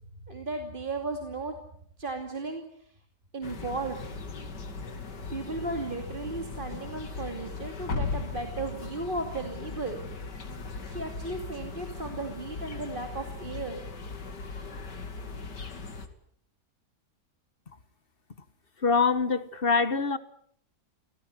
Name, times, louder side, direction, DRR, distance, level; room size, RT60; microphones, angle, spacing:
voice 1, 0.3-1.5 2.0-2.9 3.3-4.1 5.3-10.0 10.9-13.8, right 3 dB, 30° right, 2.7 m, -35 dB
sound 1, 3.4-16.1, left 4 dB, 80° left, 3.1 m, -38 dB
voice 2, 18.8-20.2, left 5 dB, 35° left, 1.5 m, -24 dB
28.0 x 18.5 x 9.5 m
omnidirectional pair, 1.8 m